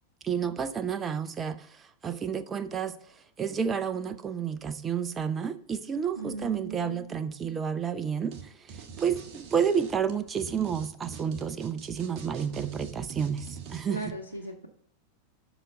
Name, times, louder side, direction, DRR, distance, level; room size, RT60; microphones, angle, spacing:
voice 1, 0.2-1.7 2.0-3.0 3.4-14.1, right 7 dB, 20° right, 13 dB, 0.6 m, -30 dB
voice 2, 6.2-7.1 13.9-14.7, right 3 dB, 90° right, 3 dB, 0.7 m, -37 dB
sound 1, 8.3-8.4 8.7-14.1, right 6 dB, 40° right, 1.4 m, -43 dB
8.1 x 5.9 x 5.3 m, 0.67 s
figure-of-eight pair, 90°, 0 cm